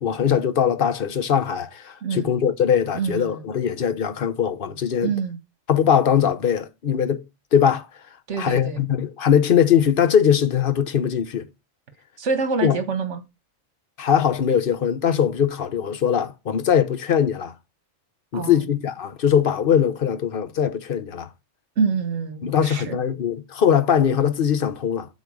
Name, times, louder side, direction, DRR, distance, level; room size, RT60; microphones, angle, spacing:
voice 1, 0.0-5.1 5.7-7.2 7.5-7.9 8.4-11.5 12.6-12.8 14.0-17.5 18.3-21.3 22.4-25.1, left 8 dB, 50° left, 1.0 m, -21 dB
voice 2, 2.0-2.3 2.9-3.5 5.0-5.4 8.3-8.8 12.2-13.2 18.3-18.6 21.8-23.0, right 5 dB, 70° right, 1.6 m, -26 dB
8.3 x 4.2 x 6.3 m
omnidirectional pair, 1.3 m